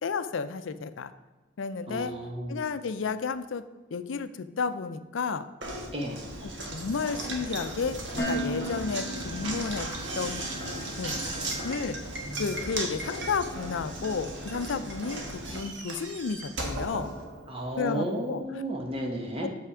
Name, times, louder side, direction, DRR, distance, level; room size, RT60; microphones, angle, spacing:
voice 1, 0.0-1.1 1.6-2.2 2.5-3.6 3.9-4.3 4.6-5.4 6.4-9.9 10.2-10.5 11.0-11.2 11.6-12.0 12.4-17.1 17.8-18.4, left 5 dB, 80° left, 12 dB, 0.5 m, -32 dB
voice 2, 1.9-2.6 5.9-6.2 17.5-19.5, right 1 dB, 30° right, 2 dB, 1.1 m, -33 dB
Knock, 5.6-17.8, right 1 dB, 65° right, 1.4 m, -36 dB
Wind instrument woodwind instrument, 8.2-11.9, equal, 35° left, 1.4 m, -48 dB
Dishes pots and pans, 8.2-10.2, right 1 dB, 15° left, 1.4 m, -35 dB
7.1 x 5.7 x 4.8 m, 1.2 s
head